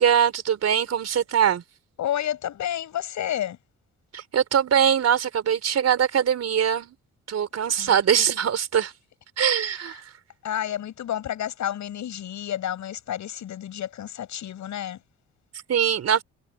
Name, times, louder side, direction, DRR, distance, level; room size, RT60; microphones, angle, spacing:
voice 1, 0.0-1.6 4.1-6.9 7.3-8.9 9.4-10.0 15.7-16.2, right 8 dB, 55° right, 4.6 m, -22 dB
voice 2, 2.0-3.6 7.6-8.0 9.6-10.0 10.4-15.0, left 11 dB, 70° left, 7.6 m, -30 dB
cardioid pair, 90°, 30 cm